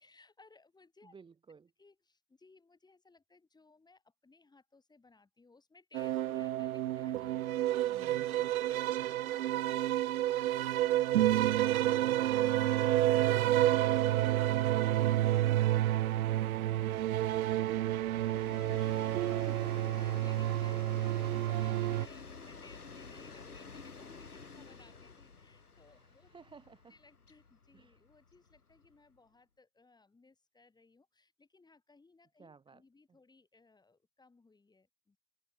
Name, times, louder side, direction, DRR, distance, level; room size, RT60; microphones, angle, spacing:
voice 1, 0.0-1.2 1.8-7.9 8.2-13.3 13.8-19.4 19.9-26.3 26.9-35.2, left 3 dB, 10° left, 5.5 m, -63 dB
voice 2, 1.0-1.7 7.9-8.5 25.9-26.9 27.7-28.0 32.4-32.8, right 5 dB, 10° right, 1.3 m, -56 dB
sound 1, 5.9-22.1, right 14 dB, 75° right, 0.5 m, -30 dB
Train, 10.9-11.0 11.4-11.5 11.8-29.2, left 4 dB, 90° left, 4.2 m, -52 dB
open air
figure-of-eight pair, 105°, 43 cm